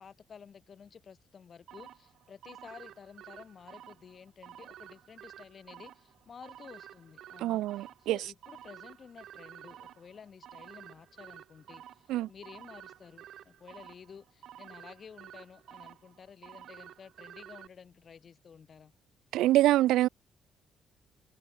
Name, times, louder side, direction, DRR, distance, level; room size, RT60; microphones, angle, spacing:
voice 1, 0.0-18.9, left 6 dB, 50° left, 5.3 m, -52 dB
sound 1, 1.7-17.7, right 11 dB, 75° right, 7.7 m, -51 dB
voice 2, 7.4-8.2 12.1-12.3 19.3-20.1, right 15 dB, 90° right, 0.4 m, -25 dB
cardioid pair, 90°, 0 cm